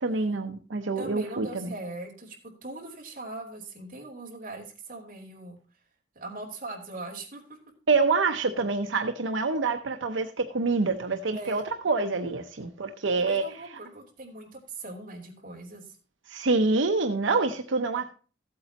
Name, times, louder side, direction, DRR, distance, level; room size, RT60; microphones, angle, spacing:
voice 1, 0.0-1.6 7.9-13.6 16.3-18.1, right 3 dB, 90° right, 0.8 m, -26 dB
voice 2, 0.9-5.6 6.1-7.6 11.3-11.6 13.2-16.0, right 2 dB, 45° right, 3.3 m, -40 dB
15.0 x 8.5 x 2.9 m
head